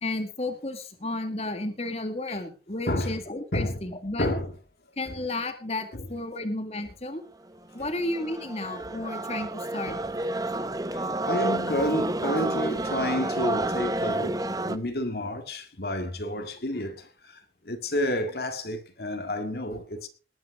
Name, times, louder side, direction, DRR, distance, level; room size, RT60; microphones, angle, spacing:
voice 1, 0.0-4.3 5.0-7.2 7.7-9.9, left 2 dB, 35° left, 1.9 m, -32 dB
voice 2, 2.9-3.2 3.5-3.9 4.2-4.6 5.1-5.2 5.9-6.1 7.8-7.9 8.8-8.9 9.9-10.3 10.9-20.1, left 1 dB, 65° left, 2.0 m, -30 dB
sound 1, 7.5-14.8, right 2 dB, 20° right, 0.7 m, -30 dB
20.0 x 9.3 x 4.8 m
head